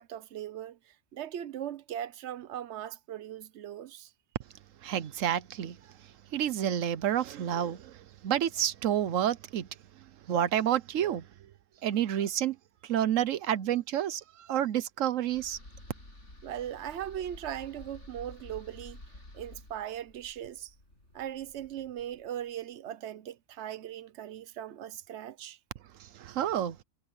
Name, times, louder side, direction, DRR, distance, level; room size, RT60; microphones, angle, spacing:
voice 1, 0.0-4.1 16.4-19.0 19.3-20.7 21.1-25.6, right 10 dB, 65° right, 1.1 m, -39 dB
voice 2, 4.8-5.8 6.3-9.7 10.3-11.3 11.8-12.6 12.8-15.6 26.0-26.8, right 10 dB, 90° right, 1.1 m, -29 dB
sound 1, 15.2-22.4, left 1 dB, 70° left, 8.3 m, -51 dB
omnidirectional pair, 1.3 m